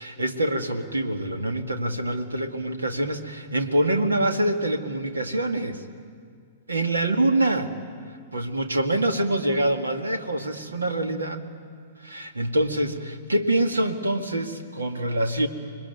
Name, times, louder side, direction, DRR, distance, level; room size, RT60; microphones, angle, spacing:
voice 1, 0.0-5.8 6.7-7.7 8.3-11.4 12.0-15.5, right 1 dB, 85° right, 6 dB, 2.0 m, -25 dB
26.0 x 22.0 x 9.3 m, 2.2 s
figure-of-eight pair, 110°, 0 cm